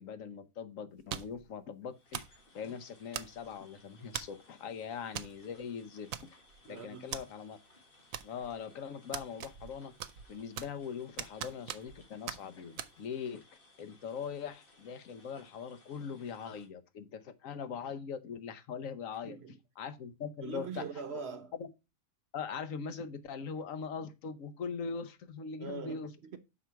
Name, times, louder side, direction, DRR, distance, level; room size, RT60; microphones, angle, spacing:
voice 1, 0.0-6.3 6.6-7.6 8.2-9.9 10.3-19.4 19.8-20.8 21.6-21.7 22.3-26.1, left 6 dB, 75° left, 1.2 m, -41 dB
sound 1, 1.1-1.4 2.1-2.4 3.1-3.6 4.1-4.4 5.1-5.3 5.6-5.7 6.1-6.6 7.1-7.2 8.1-8.6 9.1-9.7 10.0-10.8 11.2-12.0 12.3-12.4 12.8-12.9, right 10 dB, 80° right, 1.0 m, -40 dB
sound 2, 1.9-16.7, left 2 dB, 40° left, 1.9 m, -63 dB
voice 2, 6.7-7.1 19.2-19.6 20.4-21.5 25.6-26.4, right 6 dB, 55° right, 0.9 m, -42 dB
6.1 x 4.6 x 5.6 m
omnidirectional pair, 1.4 m